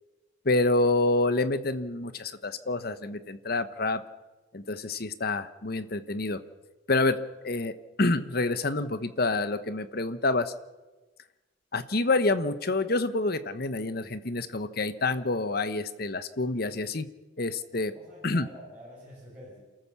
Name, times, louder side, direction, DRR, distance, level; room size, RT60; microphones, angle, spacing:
voice 1, 0.4-4.0 4.5-6.4 6.9-7.2 7.4-7.7 8.0-10.5 11.7-17.1 17.4-17.9 18.2-18.5, left 2 dB, 55° left, 12 dB, 1.1 m, -27 dB
voice 2, 17.7-19.6, equal, 10° right, -8 dB, 6.3 m, -48 dB
28.0 x 14.0 x 7.2 m, 1.2 s
head